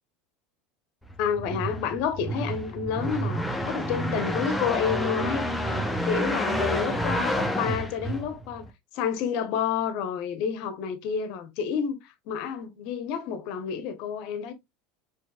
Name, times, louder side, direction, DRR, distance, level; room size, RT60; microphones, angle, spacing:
sound 1, 1.1-8.7, equal, 5° left, 0.9 m, -29 dB
voice 1, 1.2-5.4 6.0-8.6 8.9-14.5, left 7 dB, 60° left, 0.8 m, -29 dB
4.6 x 3.1 x 2.2 m
hypercardioid pair, 80°, 0 cm